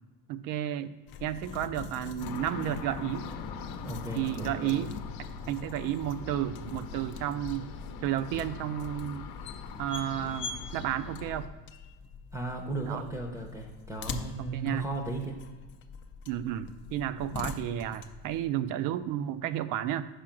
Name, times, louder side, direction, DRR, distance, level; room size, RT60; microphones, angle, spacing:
voice 1, 0.3-0.9 1.2-3.3 4.1-4.9 5.5-7.7 8.0-9.3 9.8-11.5 12.8-13.0 14.4-14.9 16.3-20.1, right 11 dB, 60° right, 14 dB, 0.4 m, -32 dB
sound 1, 1.1-18.5, left 5 dB, 35° left, 0.4 m, -44 dB
sound 2, 2.2-11.5, left 5 dB, 75° left, 0.7 m, -42 dB
voice 2, 3.8-4.8 12.3-15.4, right 2 dB, 10° right, 2 dB, 0.6 m, -35 dB
5.0 x 4.9 x 5.9 m, 1.2 s
cardioid pair, 140°, 36 cm